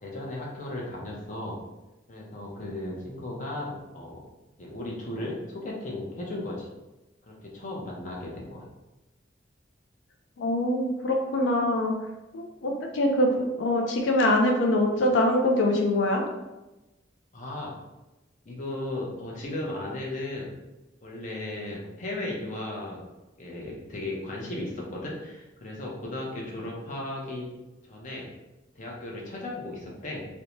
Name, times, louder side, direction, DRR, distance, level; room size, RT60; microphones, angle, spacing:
voice 1, 0.0-1.6 2.1-4.2 4.6-6.7 7.3-8.7 17.3-17.7 18.5-20.5 21.0-23.0 23.4-27.5 27.9-28.3 28.8-30.3, left 1 dB, 40° left, -3 dB, 0.6 m, -35 dB
voice 2, 10.4-11.9 12.3-16.2, left 1 dB, 85° left, 1 dB, 0.4 m, -24 dB
2.6 x 2.1 x 2.9 m, 1.0 s
head